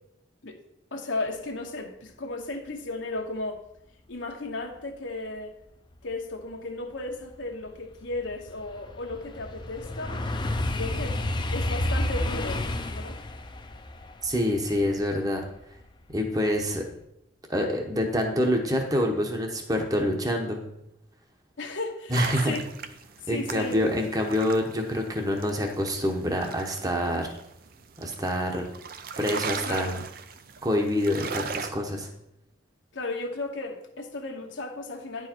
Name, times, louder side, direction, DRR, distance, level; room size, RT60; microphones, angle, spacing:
voice 1, 0.9-3.6 4.1-5.5 6.0-10.3 10.7-13.2 21.6-22.6 23.3-23.8 29.6-30.0 32.9-35.3, left 2 dB, 85° left, 2 dB, 1.1 m, -35 dB
sound 1, 6.5-6.6 7.1-16.1 16.6-16.9, left 1 dB, 25° left, 0.5 m, -31 dB
voice 2, 14.2-15.4 16.1-16.8 17.5-20.6 22.1-22.5 23.3-27.4 28.0-28.6 29.2-30.0 30.6-32.1, left 1 dB, 20° right, 3 dB, 1.0 m, -26 dB
sound 2, 22.1-31.7, right 6 dB, 50° right, 0.5 m, -38 dB
10.0 x 4.7 x 4.4 m, 0.79 s
head